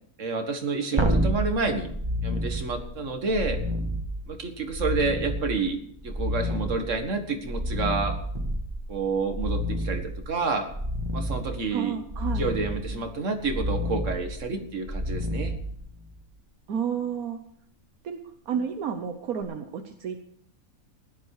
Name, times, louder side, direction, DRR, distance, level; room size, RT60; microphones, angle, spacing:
voice 1, 0.2-1.9 2.2-3.6 4.3-5.8 6.0-8.2 8.9-10.7 11.1-12.0 12.4-15.5, right 4 dB, 60° right, 5 dB, 2.1 m, -29 dB
sound 1, 1.0-16.3 19.4-19.5, equal, 20° right, 1.5 m, -30 dB
voice 2, 11.7-12.4 16.7-17.4 18.0-18.2 18.5-20.2, right 7 dB, 80° right, 6 dB, 1.4 m, -31 dB
16.5 x 11.5 x 4.9 m, 0.67 s
omnidirectional pair, 1.5 m